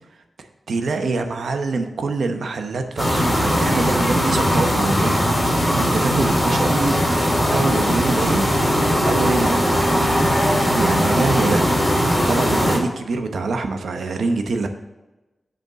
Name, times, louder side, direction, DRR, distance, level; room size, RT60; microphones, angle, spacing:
voice 1, 0.4-5.5 5.7-7.0 7.5-8.5 8.7-9.6 10.7-12.0 12.3-14.7, right 3 dB, 75° right, 6 dB, 0.9 m, -25 dB
sound 1, 3.0-12.8, equal, 10° left, 3.1 m, -19 dB
7.8 x 5.2 x 6.7 m, 1.1 s
wide cardioid pair, 115°, 0 cm